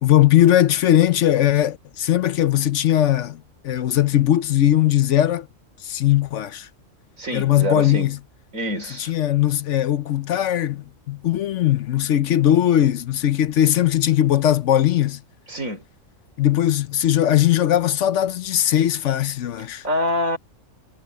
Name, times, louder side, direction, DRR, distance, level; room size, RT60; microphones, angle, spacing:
voice 1, 0.0-5.5 5.8-6.7 7.3-8.2 9.0-15.2 16.4-19.9, left 12 dB, 70° left, 1.0 m, -19 dB
voice 2, 7.2-8.1 8.5-9.1 15.5-15.8 19.8-20.4, equal, 80° right, 5.5 m, -25 dB
omnidirectional pair, 1.4 m